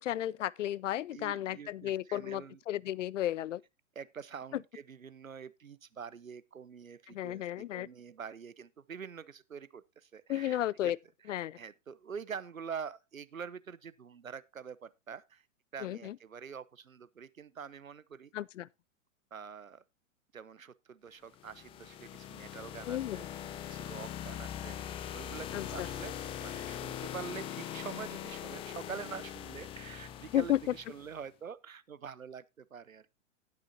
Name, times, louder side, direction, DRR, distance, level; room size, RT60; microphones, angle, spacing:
voice 1, 0.0-3.6 7.1-7.9 10.3-11.0 11.3-11.6 15.8-16.2 18.3-18.7 22.9-23.3 25.5-25.9 30.3-30.6, left 12 dB, 65° left, 0.5 m, -33 dB
voice 2, 1.1-2.6 3.9-10.9 11.5-15.4 15.7-18.3 19.3-19.8 20.3-23.3 23.7-24.8 25.1-33.1, right 6 dB, 90° right, 0.9 m, -45 dB
sound 1, 21.3-31.1, left 10 dB, 15° left, 0.5 m, -42 dB
17.5 x 6.3 x 2.8 m
figure-of-eight pair, 110°, 39 cm